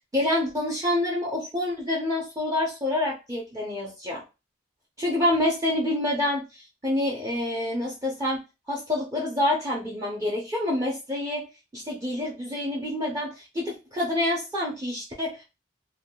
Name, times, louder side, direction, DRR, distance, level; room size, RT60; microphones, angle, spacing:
voice 1, 0.1-4.2 5.0-8.4 8.7-11.5 11.7-15.4, left 1 dB, 20° right, -4 dB, 0.6 m, -27 dB
3.4 x 2.3 x 2.3 m, 0.28 s
head